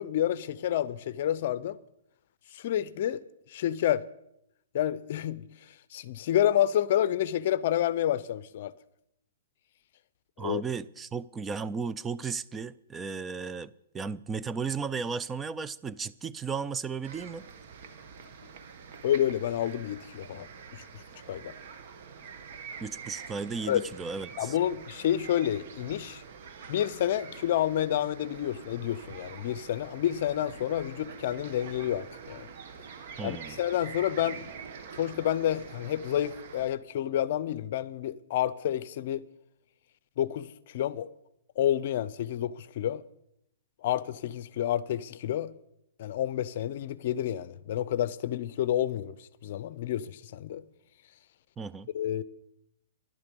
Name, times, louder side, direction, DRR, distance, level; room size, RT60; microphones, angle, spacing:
voice 1, 0.0-1.8 2.5-3.2 3.5-4.0 4.7-5.4 5.9-8.7 10.4-10.6 19.0-20.5 20.7-20.8 21.3-21.5 23.7-23.8 24.4-26.2 26.7-32.5 33.2-34.4 35.0-39.2 40.2-41.1 41.6-43.0 43.8-45.5 46.0-49.1 49.4-50.6 51.9-52.2, left 11 dB, 50° left, 0.7 m, -29 dB
voice 2, 10.4-17.4 22.8-24.5 33.2-33.6 51.6-51.9, right 5 dB, 15° right, 0.4 m, -35 dB
sound 1, 17.0-36.7, right 6 dB, 50° right, 1.6 m, -46 dB
13.0 x 11.5 x 5.3 m
hypercardioid pair, 150°, 0 cm